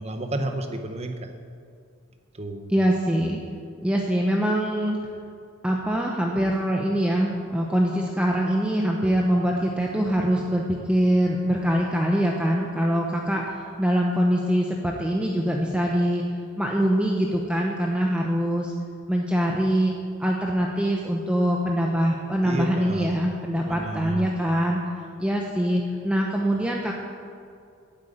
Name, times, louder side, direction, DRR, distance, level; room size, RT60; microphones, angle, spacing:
voice 1, 0.0-1.3 2.3-2.7 22.4-23.1 23.7-24.3, right 2 dB, 30° right, 6 dB, 0.9 m, -31 dB
voice 2, 2.7-3.4 3.8-5.0 5.6-16.2 16.6-18.7 19.1-19.9 20.2-24.8 25.2-26.9, equal, 5° right, -1 dB, 0.8 m, -23 dB
9.0 x 8.2 x 8.8 m, 2.4 s
head